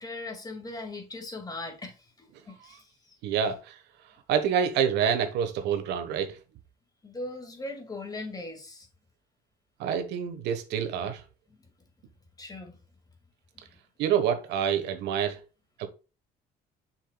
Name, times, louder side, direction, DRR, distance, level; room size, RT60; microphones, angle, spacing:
voice 1, 0.0-3.2 7.0-8.9 12.4-12.8, left 2 dB, 20° left, 2.2 m, -39 dB
voice 2, 3.2-3.8 4.3-6.4 9.8-11.2 14.0-15.4 15.8-15.9, right 8 dB, 85° right, 1.3 m, -27 dB
7.4 x 5.8 x 2.3 m
cardioid pair, 110°, 17 cm